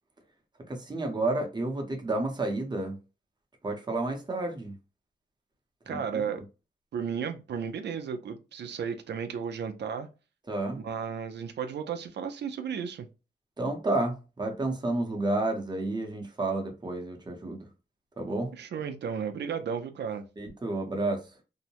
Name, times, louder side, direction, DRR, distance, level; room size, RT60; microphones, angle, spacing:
voice 1, 0.7-3.0 3.6-4.8 5.9-6.2 10.5-10.8 13.6-17.7 18.2-18.5 20.4-21.3, right 2 dB, 25° right, 0.7 m, -30 dB
voice 2, 5.9-6.4 6.9-10.1 10.7-13.1 18.5-20.2, right 7 dB, 85° right, 0.4 m, -34 dB
2.7 x 2.0 x 2.8 m
wide cardioid pair, 120°, 17 cm